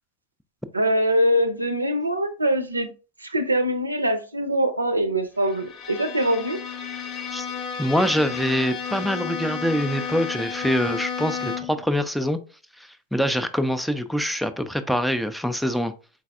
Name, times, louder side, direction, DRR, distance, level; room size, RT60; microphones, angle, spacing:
voice 1, 0.7-2.9 3.2-6.6, equal, 80° right, 0.5 m, -23 dB
Bowed string instrument, 5.4-11.9, left 6 dB, 30° left, 0.7 m, -32 dB
voice 2, 7.8-12.4 12.8-15.9, equal, ahead, 0.3 m, -24 dB
4.0 x 3.9 x 2.3 m
figure-of-eight pair, 90°, 0 cm